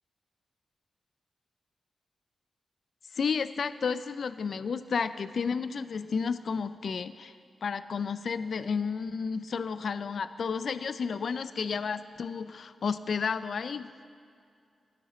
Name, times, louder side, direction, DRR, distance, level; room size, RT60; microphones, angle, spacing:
voice 1, 3.1-7.3 7.6-13.9, left 5 dB, 70° left, 13 dB, 0.4 m, -32 dB
17.0 x 12.0 x 3.1 m, 2.4 s
cardioid pair, 50°, 0 cm